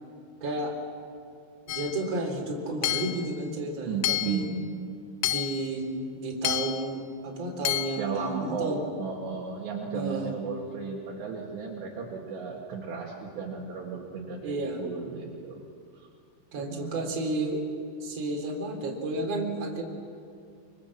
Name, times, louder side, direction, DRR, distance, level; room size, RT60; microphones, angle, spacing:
voice 1, 0.4-0.8 1.7-4.4 5.3-8.8 9.9-10.3 14.4-14.8 16.5-17.6 18.0-19.8, right 2 dB, 35° right, 0 dB, 4.1 m, -32 dB
Hammer / Chink clink, 1.7-2.0 2.8-3.3 4.0-4.5 5.2-5.7 6.4-6.9 7.6-8.0, left 15 dB, 80° left, 2.5 m, -29 dB
voice 2, 3.8-4.6 8.0-15.7 15.9-16.1 16.6-17.1, right 5 dB, 65° right, -1 dB, 3.8 m, -35 dB
26.0 x 24.5 x 7.4 m, 2.4 s
omnidirectional pair, 5.6 m